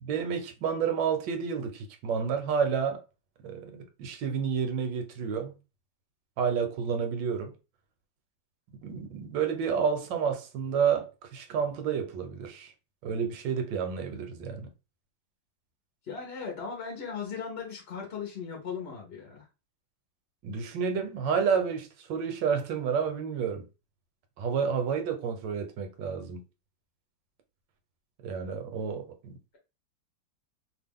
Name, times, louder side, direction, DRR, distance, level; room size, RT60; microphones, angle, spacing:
voice 1, 0.0-3.0 3.4-5.5 6.4-7.5 8.8-12.7 13.0-14.7 20.4-23.7 24.4-26.4 28.2-29.4, right 6 dB, 75° right, 1.3 m, -30 dB
voice 2, 16.0-19.5, left 6 dB, 50° left, 0.8 m, -37 dB
2.9 x 2.4 x 3.5 m
omnidirectional pair, 2.0 m